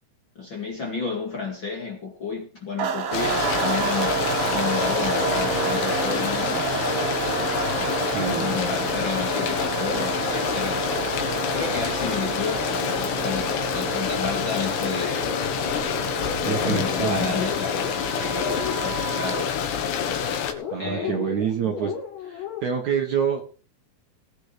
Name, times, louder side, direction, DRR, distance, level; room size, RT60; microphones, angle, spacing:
voice 1, 0.4-6.6 7.7-10.9 11.5-15.4 16.0-19.5 20.8-21.3 21.6-21.7, left 4 dB, 35° left, 2.4 m, -32 dB
sound 1, 2.8-19.5, right 6 dB, 85° right, 4.5 m, -30 dB
sound 2, 3.1-20.5, left 8 dB, 75° left, 3.8 m, -27 dB
voice 2, 8.0-8.5 16.4-17.3 20.7-21.9 22.2-23.4, right 7 dB, 55° right, 2.3 m, -27 dB
sound 3, 15.0-22.6, left 6 dB, 55° left, 6.3 m, -35 dB
19.5 x 7.7 x 5.1 m
omnidirectional pair, 5.0 m